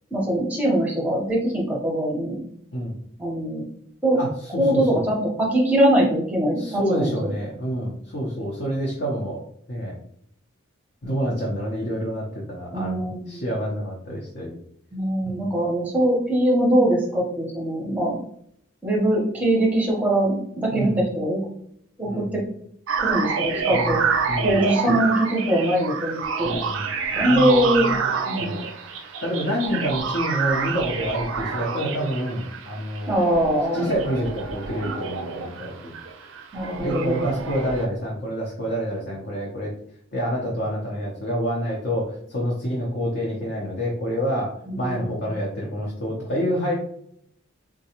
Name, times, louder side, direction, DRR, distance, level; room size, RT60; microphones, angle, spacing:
voice 1, 0.1-2.4 3.2-3.6 4.0-4.2 4.6-7.1 12.7-13.5 14.9-18.2 18.8-21.4 22.0-22.4 23.0-24.0 24.4-26.6 27.1-27.9 28.3-28.5 33.1-33.9 36.5-37.3 44.7-45.3, right 1 dB, 5° right, -2 dB, 0.7 m, -22 dB
voice 2, 4.2-5.1 6.6-10.0 11.0-14.6 15.2-15.4 20.7-21.0 22.1-22.3 23.7-24.0 24.3-24.6 26.4-26.9 27.3-28.1 28.4-28.7 29.2-33.1 33.7-36.0 36.8-39.7 40.1-44.5 44.8-46.7, equal, 50° left, -4 dB, 0.7 m, -27 dB
sound 1, 22.9-37.9, right 5 dB, 75° right, 0.4 m, -28 dB
3.5 x 2.2 x 2.8 m, 0.70 s
head